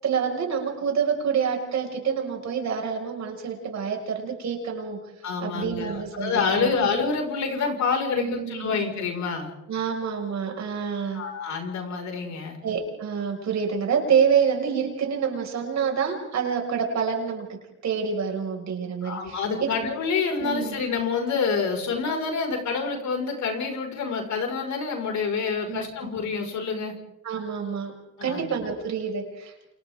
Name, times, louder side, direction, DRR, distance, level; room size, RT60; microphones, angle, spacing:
voice 1, 0.0-5.0 5.4-6.9 8.1-8.7 9.7-11.2 12.6-17.6 17.8-19.7 20.4-20.8 25.7-25.8 27.2-27.9 28.2-29.7, right 6 dB, 65° right, 2 dB, 6.1 m, -27 dB
voice 2, 5.2-9.5 11.1-12.6 19.0-26.9 28.2-28.5, left 5 dB, 70° left, 2 dB, 5.7 m, -27 dB
29.5 x 28.5 x 3.8 m, 0.89 s
cardioid pair, 90°, 30 cm